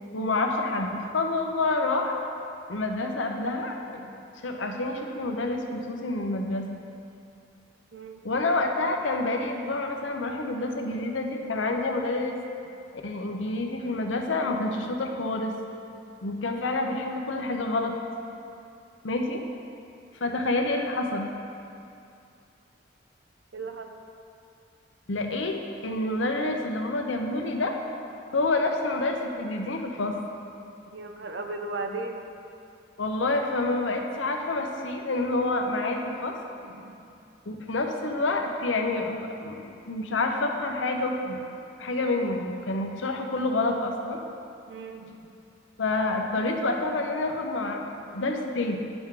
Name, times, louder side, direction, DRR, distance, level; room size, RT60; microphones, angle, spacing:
voice 1, 0.1-2.2 2.7-4.0 4.4-6.8 8.2-12.4 12.9-15.5 16.2-17.9 19.0-19.4 20.2-21.3 25.1-27.7 28.3-30.2 33.0-36.4 37.5-41.4 41.8-44.2 45.8-48.8, left 2 dB, 80° left, 3 dB, 0.8 m, -28 dB
voice 2, 7.9-8.2 20.3-20.4 23.5-23.9 30.9-32.2 36.6-37.0 44.7-45.3, right 3 dB, 65° right, 4 dB, 0.7 m, -36 dB
10.0 x 6.0 x 3.7 m, 2.6 s
head